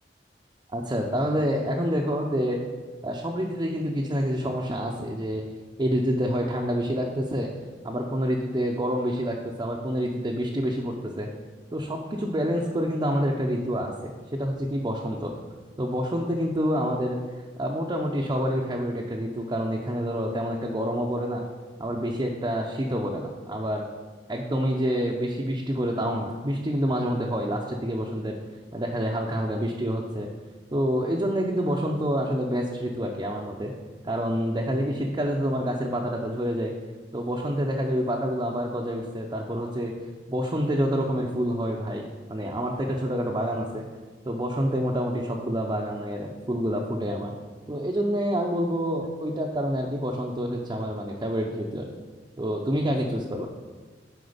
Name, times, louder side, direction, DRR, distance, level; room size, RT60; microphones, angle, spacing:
voice 1, 0.7-2.6 3.0-5.4 5.8-7.5 7.8-11.3 11.7-15.3 15.8-17.2 17.6-21.4 21.8-23.8 24.3-28.4 28.7-30.3 30.7-33.7 34.0-36.7 37.1-39.9 40.3-43.8 44.2-47.3 47.7-51.9 52.4-53.5, equal, 25° right, -1 dB, 0.6 m, -27 dB
8.0 x 4.9 x 5.0 m, 1.3 s
head